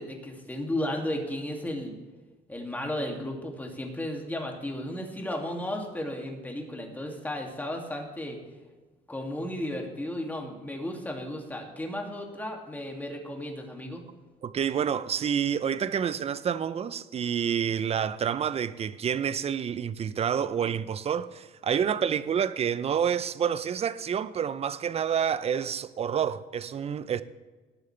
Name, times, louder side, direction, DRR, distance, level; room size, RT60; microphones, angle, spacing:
voice 1, 0.0-1.9 2.5-8.4 9.1-14.0, left 1 dB, 10° left, 2.4 m, -34 dB
voice 2, 14.4-27.2, right 8 dB, 35° right, 0.6 m, -28 dB
18.0 x 9.0 x 3.3 m
cardioid pair, 110°, 17 cm